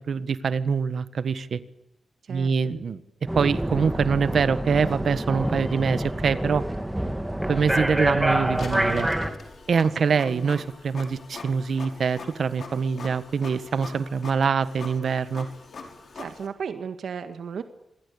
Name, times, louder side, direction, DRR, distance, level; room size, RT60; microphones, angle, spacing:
voice 1, 0.1-1.6 2.3-3.0 3.3-6.7 7.5-9.1 9.7-15.5, right 6 dB, 60° right, 13 dB, 1.4 m, -24 dB
voice 2, 2.2-2.8 10.2-10.6 16.1-17.6, right 6 dB, 85° right, 8 dB, 1.7 m, -35 dB
sound 1, 3.3-9.3, right 1 dB, 10° right, 1.8 m, -27 dB
Printer, 8.5-16.5, left 4 dB, 55° left, 5.5 m, -42 dB
27.0 x 22.0 x 8.6 m, 0.86 s
wide cardioid pair, 170°, 0 cm